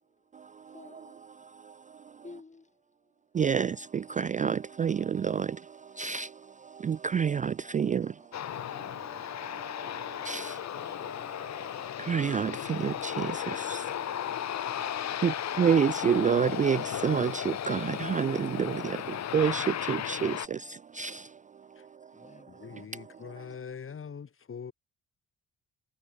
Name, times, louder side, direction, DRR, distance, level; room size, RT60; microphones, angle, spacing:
voice 1, 0.7-1.2 2.2-2.7 7.8-9.0 10.7-12.4 22.1-23.3, left 3 dB, 25° left, 4.6 m, -56 dB
voice 2, 3.3-6.3 6.6-8.1 8.7-8.9 9.4-11.7 12.0-14.1 14.8-14.9 15.2-21.3, right 7 dB, 25° right, 0.4 m, -29 dB
Aircraft, 8.3-20.5, left 10 dB, 60° left, 2.4 m, -35 dB
voice 3, 22.5-24.7, left 6 dB, 45° left, 7.3 m, -43 dB
cardioid pair, 90°, 30 cm